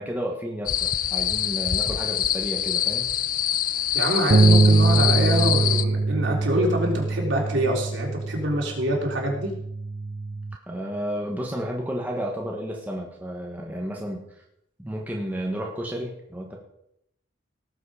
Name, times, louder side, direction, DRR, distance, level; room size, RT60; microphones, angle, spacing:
voice 1, 0.0-3.1 10.7-14.3 14.8-16.6, equal, 10° right, -1 dB, 1.6 m, -32 dB
sound 1, 0.7-5.8, left 10 dB, 40° left, 0.5 m, -25 dB
voice 2, 3.9-9.5, right 1 dB, 65° right, -1 dB, 3.7 m, -25 dB
sound 2, 4.3-10.6, right 3 dB, 35° right, 0.4 m, -22 dB
18.0 x 7.8 x 5.0 m, 0.78 s
head